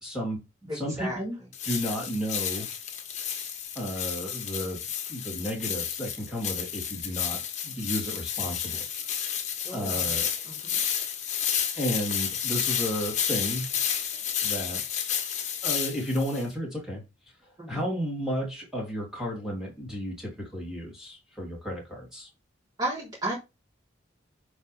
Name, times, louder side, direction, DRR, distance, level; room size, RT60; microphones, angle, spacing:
voice 1, 0.0-1.4 1.6-2.7 3.7-4.8 5.1-8.8 9.7-10.3 11.7-13.7 14.4-15.1 15.6-17.0 17.7-22.3, equal, 5° right, 3.0 m, -33 dB
voice 2, 0.7-1.2 9.6-10.1 10.5-10.8 17.6-17.8 22.8-23.3, right 1 dB, 20° right, 3.7 m, -34 dB
sound 1, 1.5-16.4, left 8 dB, 40° left, 1.4 m, -31 dB
9.1 x 4.7 x 3.4 m
head